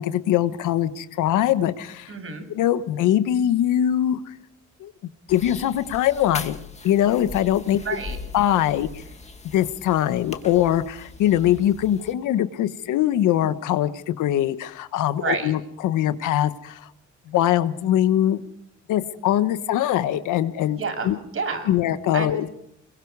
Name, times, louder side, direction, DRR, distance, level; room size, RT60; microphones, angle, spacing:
voice 1, 0.0-2.1 2.5-4.3 4.8-4.9 5.3-6.6 6.8-7.8 8.3-9.0 9.5-16.9 17.3-18.4 18.9-20.8 21.0-21.2 21.7-22.5, left 12 dB, 90° left, 12 dB, 1.3 m, -22 dB
voice 2, 2.1-2.4 7.7-8.2 15.1-15.5 20.7-21.7 22.1-22.4, right 4 dB, 45° right, 6 dB, 7.3 m, -29 dB
sound 1, 5.3-12.1, left 4 dB, 20° left, 2.3 m, -40 dB
24.5 x 23.0 x 4.8 m, 0.78 s
cardioid pair, 90°, 30 cm